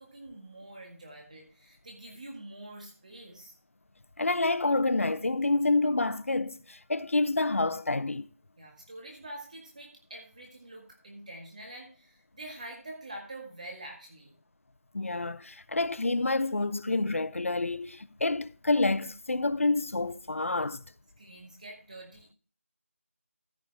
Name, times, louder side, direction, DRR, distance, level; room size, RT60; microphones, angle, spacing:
voice 1, 0.0-3.6 8.6-14.4 21.2-22.3, right 1 dB, 30° right, 1.8 m, -46 dB
voice 2, 4.2-8.3 14.9-20.8, left 2 dB, 65° left, 0.7 m, -28 dB
14.0 x 5.6 x 4.7 m
figure-of-eight pair, 175°, 8 cm